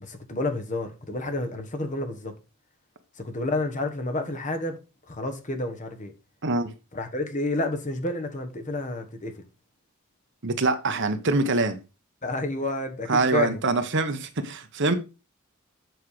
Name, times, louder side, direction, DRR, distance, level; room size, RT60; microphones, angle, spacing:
voice 1, 0.0-2.3 3.2-4.8 5.1-6.1 6.9-9.3 12.2-13.6, left 2 dB, 35° left, 1.3 m, -30 dB
voice 2, 10.4-11.8 13.1-14.9, right 3 dB, 55° right, 1.1 m, -24 dB
8.0 x 5.6 x 4.9 m
head